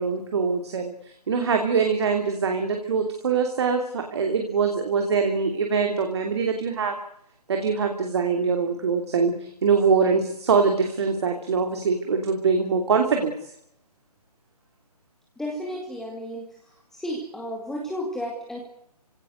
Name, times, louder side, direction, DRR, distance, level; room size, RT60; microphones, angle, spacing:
voice 1, 0.0-7.0 7.5-13.5, right 5 dB, 45° right, 4 dB, 3.0 m, -23 dB
voice 2, 15.4-16.5 16.9-18.6, equal, ahead, -2 dB, 2.5 m, -32 dB
27.5 x 17.5 x 8.0 m, 0.74 s
figure-of-eight pair, 145°, 20 cm